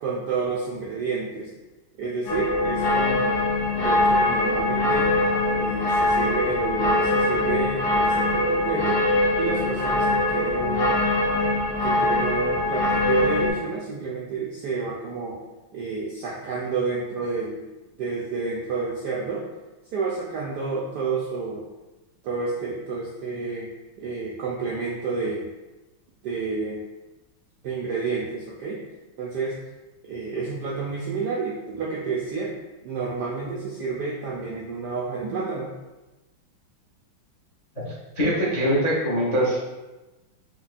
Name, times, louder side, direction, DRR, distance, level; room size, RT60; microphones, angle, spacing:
voice 1, 0.0-1.5 2.0-3.4 3.8-5.1 5.6-9.0 9.4-11.0 11.8-15.4 15.7-17.6 18.0-19.4 19.9-21.6 22.2-23.7 24.0-25.5 26.2-26.8 27.6-28.8 29.2-29.6 30.1-32.5 32.8-35.7, right 4 dB, 75° right, -4 dB, 0.9 m, -30 dB
sound 1, 2.3-13.5, left 2 dB, 65° left, 1.1 m, -22 dB
voice 2, 38.2-39.7, equal, 35° left, -6 dB, 0.6 m, -22 dB
4.7 x 2.9 x 2.5 m, 1.1 s
omnidirectional pair, 2.4 m